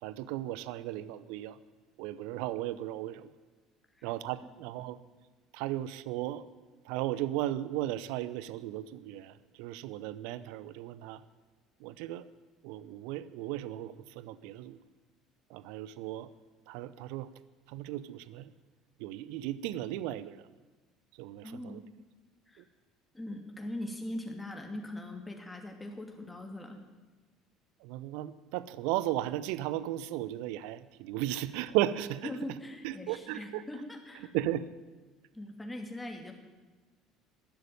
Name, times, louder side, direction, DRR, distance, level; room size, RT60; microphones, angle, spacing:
voice 1, 0.0-1.6 2.0-3.3 4.0-5.0 5.5-6.4 6.8-11.2 11.8-12.2 12.6-14.8 15.5-16.3 16.7-17.3 17.7-18.5 19.0-20.5 21.1-21.8 22.6-22.7 27.8-32.3 32.8-33.6 34.2-34.7, right 14 dB, 60° right, 17 dB, 0.7 m, -35 dB
voice 2, 21.4-21.8 22.5-22.7 23.1-26.8 31.3-31.4 32.2-34.3 35.3-36.3, left 1 dB, 10° left, 3 dB, 2.7 m, -41 dB
13.0 x 12.0 x 9.4 m, 1.3 s
figure-of-eight pair, 60°, 0 cm